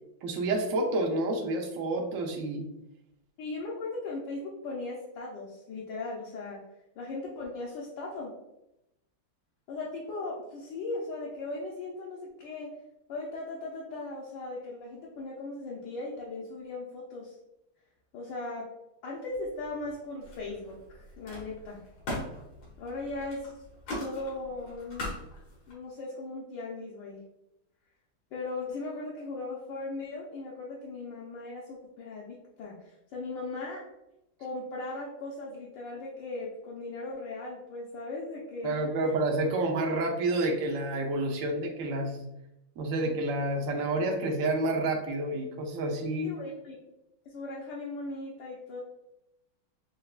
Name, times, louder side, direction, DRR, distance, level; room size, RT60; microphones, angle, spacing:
voice 1, 0.2-2.7 38.6-42.3 42.8-46.3, right 2 dB, 75° right, 1 dB, 0.7 m, -29 dB
voice 2, 3.4-6.6 7.0-8.3 9.7-12.7 13.1-17.4 18.1-18.7 19.0-21.8 22.8-23.5 24.0-25.2 25.7-27.2 28.3-33.9 34.4-39.1 46.2-46.8 47.2-48.8, left 2 dB, 70° left, -4 dB, 1.3 m, -38 dB
Camera, 19.3-19.9 20.2-25.7, left 1 dB, 90° left, 2.4 m, -41 dB
6.3 x 2.2 x 2.4 m, 0.89 s
omnidirectional pair, 2.3 m